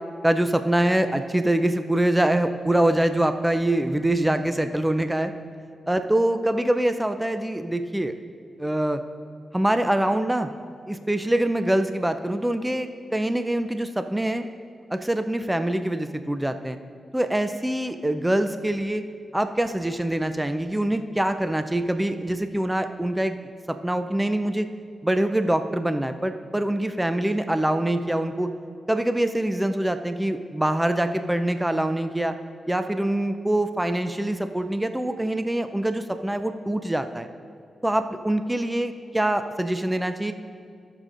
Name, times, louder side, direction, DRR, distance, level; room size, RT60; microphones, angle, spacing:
voice 1, 0.2-5.3 5.9-8.1 8.6-9.0 9.5-10.5 10.9-14.5 14.9-16.8 17.1-19.0 19.3-23.4 23.7-24.7 25.0-28.5 28.9-32.4 32.7-37.3 37.8-40.3, right 1 dB, 10° right, 8 dB, 0.4 m, -24 dB
17.0 x 6.6 x 2.5 m, 2.3 s
cardioid pair, 60°, 0 cm